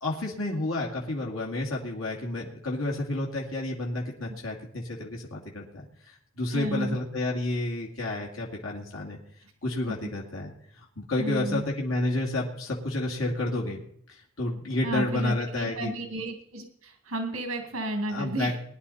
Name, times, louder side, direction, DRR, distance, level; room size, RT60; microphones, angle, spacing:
voice 1, 0.0-9.2 9.6-13.8 14.1-15.9 18.1-18.6, left 2 dB, 75° left, -2 dB, 2.4 m, -30 dB
voice 2, 6.5-7.0 10.0-10.1 11.2-11.6 14.8-18.6, right 1 dB, 80° right, 4 dB, 2.3 m, -32 dB
21.0 x 10.5 x 4.2 m, 0.68 s
head